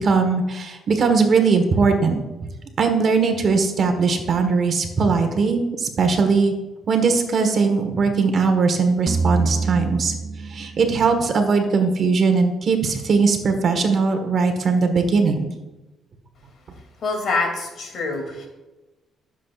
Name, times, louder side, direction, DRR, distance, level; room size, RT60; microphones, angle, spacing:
voice 1, 0.0-2.5 2.8-6.5 6.9-10.1 10.5-15.5, right 4 dB, 55° right, 5 dB, 1.5 m, -20 dB
sound 1, 9.1-12.3, right 3 dB, 35° right, 0.7 m, -27 dB
voice 2, 17.0-18.5, left 3 dB, 60° left, 2 dB, 2.7 m, -25 dB
14.5 x 7.4 x 2.5 m, 1.1 s
cardioid pair, 90°, 0 cm